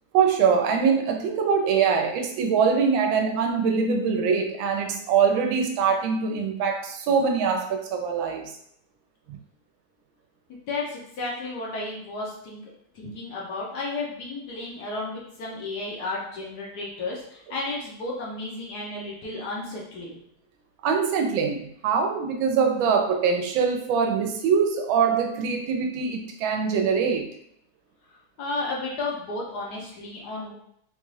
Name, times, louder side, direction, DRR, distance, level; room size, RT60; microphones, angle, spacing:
voice 1, 0.1-8.5 9.3-9.4 20.8-27.3, right 6 dB, 80° right, 4 dB, 1.3 m, -23 dB
voice 2, 10.5-12.7 12.9-20.2 28.1-30.5, left 2 dB, 65° left, -3 dB, 1.2 m, -33 dB
3.9 x 2.3 x 3.1 m, 0.71 s
omnidirectional pair, 2.1 m